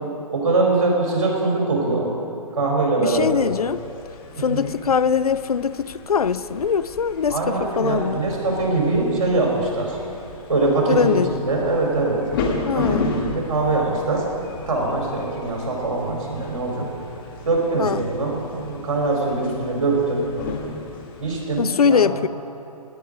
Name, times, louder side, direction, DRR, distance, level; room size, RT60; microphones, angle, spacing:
voice 1, 0.3-2.1 2.5-3.4 4.4-4.6 7.3-10.0 10.5-12.2 12.8-13.0 13.2-14.3 14.7-16.9 17.5-20.3 21.2-22.1, right 2 dB, 55° right, 4.1 m, -22 dB
voice 2, 3.0-3.8 4.4-8.2 10.9-11.4 12.6-13.1 17.8-18.1 21.6-22.3, left 6 dB, 75° left, 0.5 m, -22 dB
sound 1, 3.1-21.6, left 4 dB, 35° left, 1.7 m, -34 dB
17.5 x 10.0 x 5.2 m
figure-of-eight pair, 130°, 19 cm